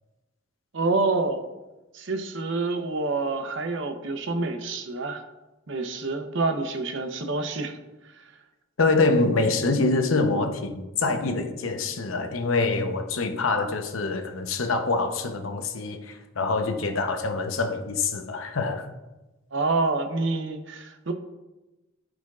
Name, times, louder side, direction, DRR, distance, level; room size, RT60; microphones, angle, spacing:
voice 1, 0.7-1.4 1.9-5.2 5.7-7.8 8.1-8.3 19.5-21.1, right 3 dB, 60° right, 0.8 m, -27 dB
voice 2, 8.8-18.9, left 3 dB, 75° left, 0.8 m, -25 dB
14.5 x 4.9 x 2.4 m
head